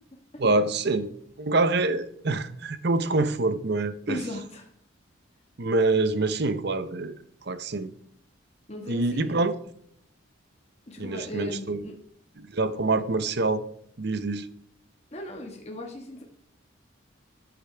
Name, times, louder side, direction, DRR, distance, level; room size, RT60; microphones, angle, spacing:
voice 1, 0.4-1.1 1.4-4.2 5.6-7.9 8.9-9.5 11.0-11.8 12.4-13.6 14.0-14.5, right 3 dB, 55° right, 0.7 m, -26 dB
voice 2, 4.1-4.7 8.7-9.3 10.9-11.9 15.1-16.2, left 1 dB, 30° left, 1.3 m, -37 dB
14.0 x 8.7 x 3.4 m
head